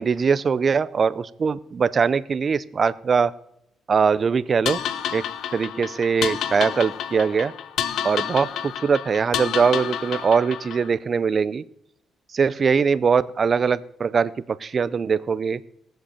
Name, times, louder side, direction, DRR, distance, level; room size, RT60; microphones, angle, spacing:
voice 1, 0.0-3.3 3.9-4.8 5.1-5.2 5.5-7.5 8.0-11.6 12.3-15.6, right 5 dB, 40° right, 18 dB, 0.6 m, -21 dB
sound 1, 4.7-10.9, left 9 dB, 75° left, 0.9 m, -30 dB
18.5 x 7.9 x 7.1 m, 0.77 s
cardioid pair, 90°, 0 cm